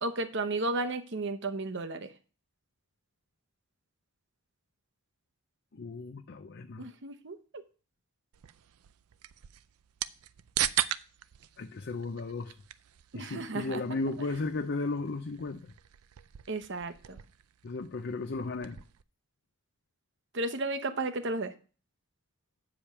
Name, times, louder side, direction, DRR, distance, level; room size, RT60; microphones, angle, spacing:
voice 1, 0.0-2.1 6.8-7.4 13.1-14.3 16.5-17.2 20.3-21.5, right 2 dB, 55° right, 0.9 m, -33 dB
voice 2, 5.7-6.9 11.6-12.5 13.1-15.7 17.6-18.8, left 3 dB, 50° left, 0.5 m, -35 dB
sound 1, 8.3-19.0, right 12 dB, 90° right, 0.4 m, -39 dB
8.8 x 5.1 x 5.7 m
head